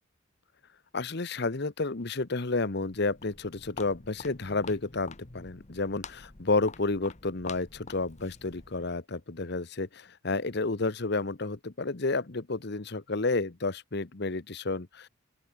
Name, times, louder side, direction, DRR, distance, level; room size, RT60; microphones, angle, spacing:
voice 1, 0.9-15.1, left 3 dB, 55° left, 1.1 m, -31 dB
Walk footsteps, 2.9-8.9, left 4 dB, 35° left, 1.3 m, -47 dB
open air
head